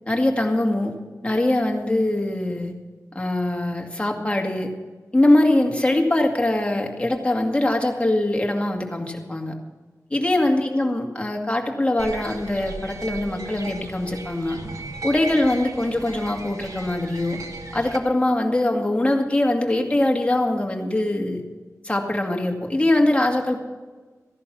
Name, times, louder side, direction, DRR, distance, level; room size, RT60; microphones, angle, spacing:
voice 1, 0.1-1.0 1.2-2.7 3.1-4.7 5.1-9.6 10.1-14.6 15.0-17.4 17.7-21.4 21.8-23.6, left 1 dB, 20° left, 2 dB, 2.1 m, -22 dB
sound 1, 12.0-18.0, right 3 dB, 70° right, 1.5 m, -36 dB
14.5 x 11.0 x 5.9 m, 1.3 s
wide cardioid pair, 75°, 6 cm